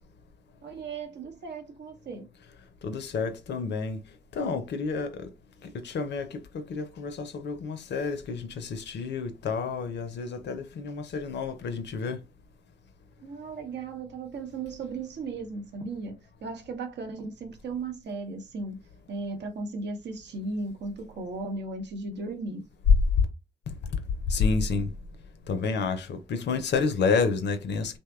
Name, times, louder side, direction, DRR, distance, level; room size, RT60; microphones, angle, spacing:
voice 1, 0.6-2.3 13.2-18.8 19.1-22.7, right 3 dB, 60° right, 0.7 m, -36 dB
voice 2, 2.8-4.0 4.4-5.3 5.8-6.3 6.5-12.2 24.3-24.9 25.5-28.0, left 4 dB, 60° left, 0.5 m, -29 dB
2.7 x 2.1 x 2.2 m
supercardioid pair, 45°, 20 cm